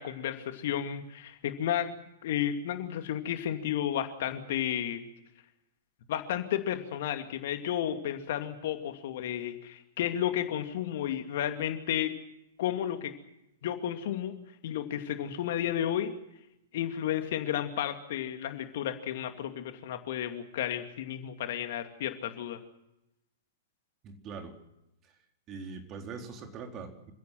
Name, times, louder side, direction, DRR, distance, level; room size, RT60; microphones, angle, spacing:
voice 1, 0.0-1.9 2.2-5.0 6.1-12.1 12.6-13.1 13.6-14.4 14.6-16.1 16.7-22.6, left 10 dB, 50° left, 7 dB, 2.5 m, -32 dB
voice 2, 24.0-24.6 25.5-27.1, right 5 dB, 30° right, 4 dB, 4.1 m, -42 dB
27.5 x 16.5 x 7.7 m, 0.87 s
figure-of-eight pair, 105°, 0 cm